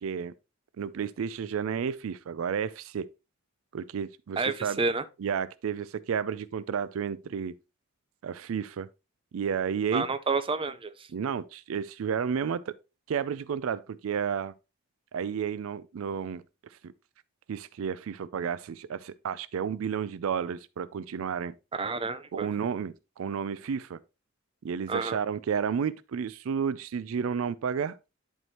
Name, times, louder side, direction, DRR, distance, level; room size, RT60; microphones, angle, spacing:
voice 1, 0.0-0.3 0.8-3.1 3.7-4.8 5.2-7.6 8.2-8.9 9.3-10.1 11.1-12.8 13.1-14.5 15.1-16.4 16.8-16.9 17.5-21.5 22.3-24.0 24.6-28.0, right 7 dB, 75° right, 0.4 m, -31 dB
voice 2, 4.4-5.0 9.9-11.1 21.7-22.5 24.9-25.2, right 4 dB, 25° right, 0.5 m, -30 dB
11.0 x 4.6 x 2.9 m
head